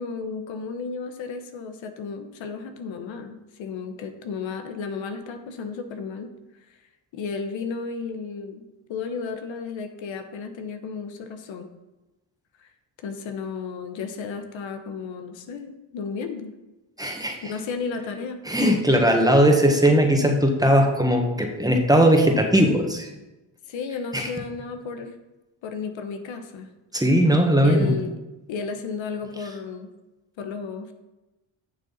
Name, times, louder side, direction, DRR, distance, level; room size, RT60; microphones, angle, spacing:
voice 1, 0.0-6.3 6.7-6.8 7.1-11.7 12.6-12.7 13.0-16.5 17.4-18.4 23.7-25.2 25.6-26.7 27.6-28.2 28.5-29.9 30.4-30.9, left 5 dB, 75° left, 7 dB, 1.2 m, -33 dB
voice 2, 17.0-17.3 18.5-23.1 24.1-24.3 26.9-27.9, equal, 10° right, 2 dB, 1.7 m, -19 dB
11.0 x 6.6 x 4.2 m, 1.0 s
cardioid pair, 80°, 47 cm